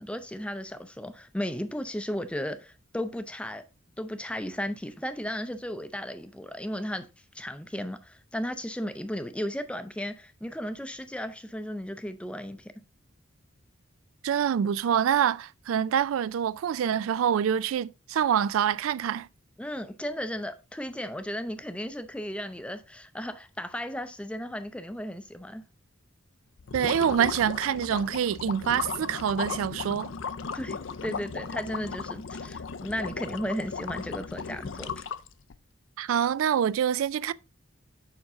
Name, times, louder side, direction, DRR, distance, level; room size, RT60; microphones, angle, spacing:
voice 1, 0.0-3.6 4.0-7.1 7.3-12.7 19.6-25.6 30.5-35.0, equal, 5° left, 0.5 m, -35 dB
voice 2, 14.2-19.3 26.7-30.1 36.0-37.3, right 8 dB, 85° right, 0.3 m, -26 dB
sound 1, 26.6-35.6, left 5 dB, 65° left, 0.5 m, -36 dB
7.2 x 5.2 x 3.6 m
head